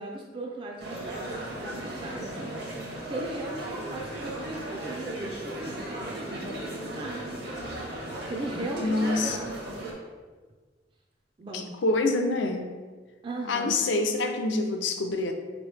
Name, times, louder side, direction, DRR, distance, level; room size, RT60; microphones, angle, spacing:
voice 1, 0.0-2.5 3.0-7.3 8.3-9.7 11.4-11.7 13.2-13.8, right 2 dB, 25° right, -1 dB, 0.4 m, -37 dB
sound 1, 0.8-9.9, right 1 dB, 60° right, 0.9 m, -36 dB
voice 2, 8.8-9.4 11.5-12.7 13.5-15.3, left 2 dB, 80° left, 5 dB, 0.5 m, -26 dB
4.5 x 3.0 x 3.2 m, 1.4 s
head